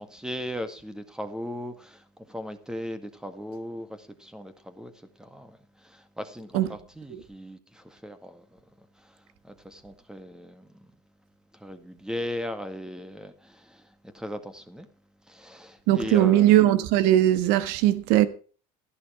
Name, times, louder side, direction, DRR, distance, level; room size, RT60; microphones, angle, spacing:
voice 1, 0.0-10.9 11.5-14.9 15.2-16.5, equal, 5° right, 1.8 m, -38 dB
voice 2, 15.9-18.3, right 13 dB, 75° right, 1.4 m, -19 dB
13.0 x 11.0 x 4.7 m
supercardioid pair, 100°, 17 cm